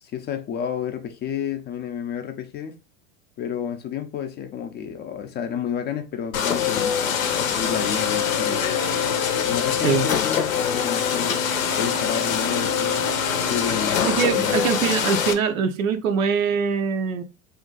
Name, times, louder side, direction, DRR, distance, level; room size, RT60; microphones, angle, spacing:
voice 1, 0.0-2.8 3.4-8.6 9.4-11.5 11.8-13.1 13.5-14.7, left 8 dB, 25° left, 0.4 m, -31 dB
sound 1, 6.3-15.3, left 7 dB, 85° left, 0.6 m, -23 dB
voice 2, 14.0-17.2, right 6 dB, 85° right, 0.6 m, -23 dB
2.5 x 2.2 x 3.8 m
hypercardioid pair, 95°, 39 cm